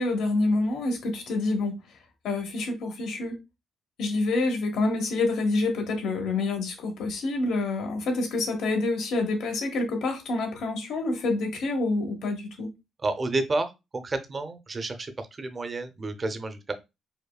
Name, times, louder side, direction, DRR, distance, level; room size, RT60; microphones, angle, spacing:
voice 1, 0.0-1.8 2.2-3.4 4.0-12.7, left 2 dB, 80° left, 1.1 m, -27 dB
voice 2, 13.0-16.7, right 2 dB, 35° right, 0.6 m, -30 dB
5.1 x 2.2 x 2.3 m
cardioid pair, 90°, 0 cm